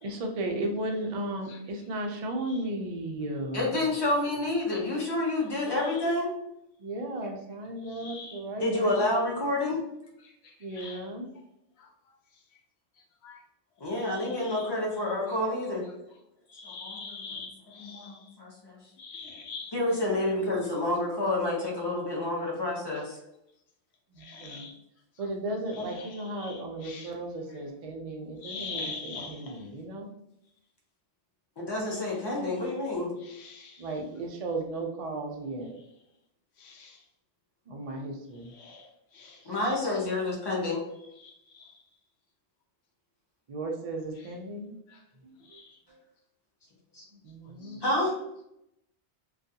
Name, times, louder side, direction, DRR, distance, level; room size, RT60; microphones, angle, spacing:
voice 1, 0.0-3.8 6.8-9.5 10.6-11.3 15.4-16.1 20.1-20.2 24.1-24.7 25.2-30.1 33.8-35.7 37.7-38.5 39.5-39.6 43.5-44.7 45.2-45.6 45.9-46.0 47.1-47.9, right 1 dB, 70° right, 2 dB, 0.3 m, -35 dB
voice 2, 3.5-6.3 8.6-9.8 13.8-15.8 16.6-17.0 17.8-18.8 19.7-23.2 31.6-33.1 39.5-40.8 46.9-47.0 47.8-48.2, left 2 dB, 30° left, -2 dB, 0.5 m, -29 dB
voice 3, 5.7-6.1 7.8-8.5 10.2-11.1 11.8-11.9 12.3-12.6 13.2-13.4 13.8-14.7 15.3-15.4 16.5-18.3 19.0-19.7 24.2-24.7 25.7-27.1 28.4-29.7 33.2-33.9 36.6-37.0 38.4-39.5 41.2-41.8 44.2-44.3 44.9-45.0 45.4-45.8 47.6-47.8, left 4 dB, 70° left, 1 dB, 0.8 m, -44 dB
2.3 x 2.3 x 2.6 m, 0.82 s
omnidirectional pair, 1.1 m